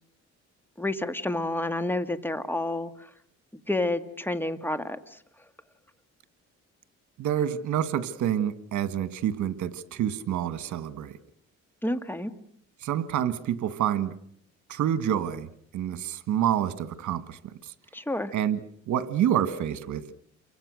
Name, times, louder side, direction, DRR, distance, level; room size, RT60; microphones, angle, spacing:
voice 1, 0.8-3.1 3.7-5.2 11.8-12.3 17.9-18.3, left 2 dB, 5° left, 1.9 m, -29 dB
voice 2, 7.2-11.1 12.8-14.1 14.7-15.5 15.7-17.7 18.3-18.6 18.9-20.1, right 10 dB, 75° right, 1.8 m, -28 dB
29.0 x 24.0 x 6.4 m
cardioid pair, 90°, 30 cm